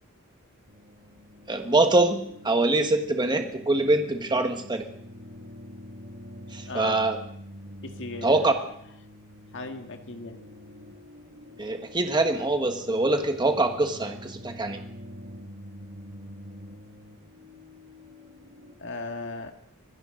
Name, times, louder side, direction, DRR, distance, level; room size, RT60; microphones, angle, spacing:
sound 1, 0.7-18.7, equal, 85° right, 5.6 m, -46 dB
voice 1, 1.5-4.9 6.5-7.2 8.2-8.5 11.6-14.8, right 2 dB, 20° right, 5 dB, 1.4 m, -24 dB
voice 2, 6.7-7.0 7.8-8.6 9.5-10.4 18.8-19.5, left 3 dB, 55° left, 5 dB, 1.7 m, -36 dB
25.5 x 14.5 x 3.9 m, 0.69 s
head